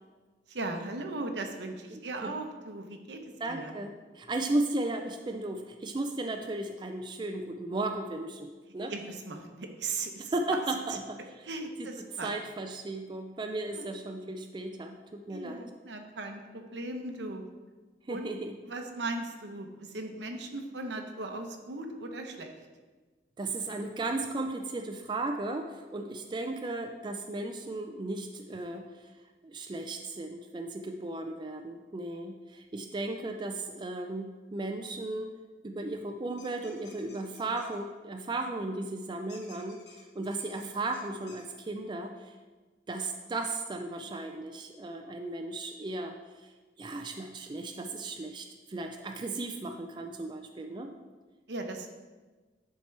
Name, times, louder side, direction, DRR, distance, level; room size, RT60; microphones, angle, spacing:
voice 1, 0.5-3.7 8.9-10.3 10.9-11.0 11.4-12.3 13.7-13.9 15.3-17.5 18.1-18.3 18.6-22.5 51.5-51.9, right 2 dB, 80° right, 4 dB, 0.8 m, -38 dB
voice 2, 1.9-2.3 3.4-8.9 10.3-11.2 12.2-15.6 18.1-18.5 23.4-29.1 29.4-35.3 35.6-39.8 40.2-42.3 42.9-46.2 46.8-50.9, right 2 dB, 25° right, 5 dB, 0.4 m, -35 dB
sound 1, 36.4-37.8 39.3-41.4, left 4 dB, 70° left, 1.3 m, -55 dB
10.0 x 4.4 x 3.3 m, 1.3 s
head